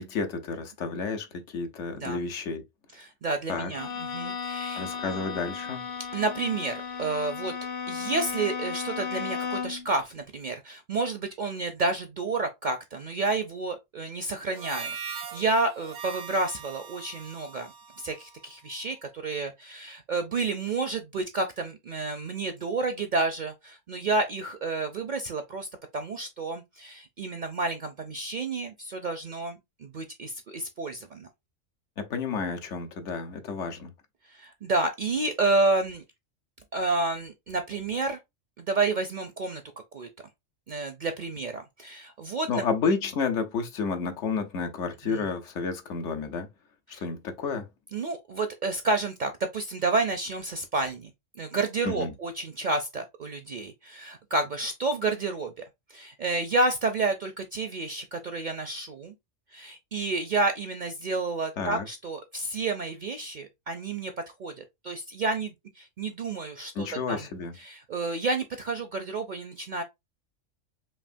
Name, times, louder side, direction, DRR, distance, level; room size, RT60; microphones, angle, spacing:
voice 1, 0.0-2.7 3.5-3.7 4.7-5.8 32.0-33.9 42.5-46.5 46.9-47.7 51.8-52.1 61.6-61.8 66.7-67.6, left 5 dB, 75° left, 1.1 m, -31 dB
voice 2, 3.0-4.9 6.1-7.5 7.9-25.7 25.9-31.3 34.3-36.0 36.7-38.2 38.6-39.6 39.9-40.1 40.7-42.6 45.1-45.2 46.9-47.0 47.9-51.1 51.4-55.5 55.9-59.1 59.5-64.1 64.4-67.2 67.6-69.8, right 3 dB, 55° right, 0.5 m, -30 dB
Bowed string instrument, 3.7-9.9, left 6 dB, 55° left, 0.9 m, -35 dB
Harmonica, 14.5-19.1, right 6 dB, 80° right, 1.0 m, -41 dB
5.6 x 2.5 x 2.5 m
omnidirectional pair, 1.3 m